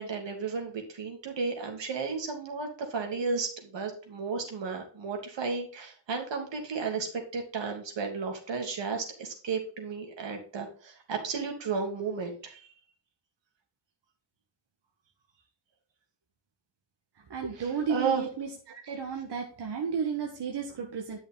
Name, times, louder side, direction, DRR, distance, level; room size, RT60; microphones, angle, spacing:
voice 1, 0.0-12.7 17.5-18.2, right 5 dB, 85° right, 3 dB, 2.9 m, -33 dB
voice 2, 17.3-21.2, right 6 dB, 65° right, 1 dB, 1.6 m, -33 dB
11.0 x 6.3 x 3.9 m, 0.40 s
wide cardioid pair, 165°, 42 cm